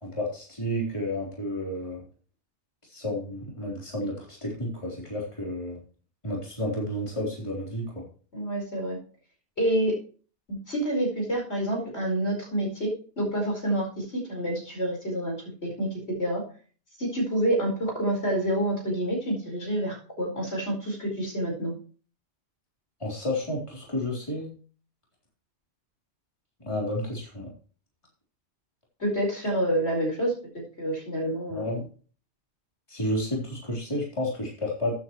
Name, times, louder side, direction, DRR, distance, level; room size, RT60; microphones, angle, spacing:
voice 1, 0.0-2.0 2.9-5.8 6.2-8.0 23.0-24.5 26.7-27.5 31.5-31.9 32.9-35.0, left 1 dB, 25° left, -3 dB, 3.9 m, -31 dB
voice 2, 8.3-9.0 9.6-10.0 10.5-12.9 13.2-15.4 15.6-16.4 17.0-21.7 29.0-31.6, right 1 dB, 70° left, 0 dB, 5.0 m, -28 dB
14.0 x 9.3 x 3.1 m, 0.40 s
omnidirectional pair, 1.1 m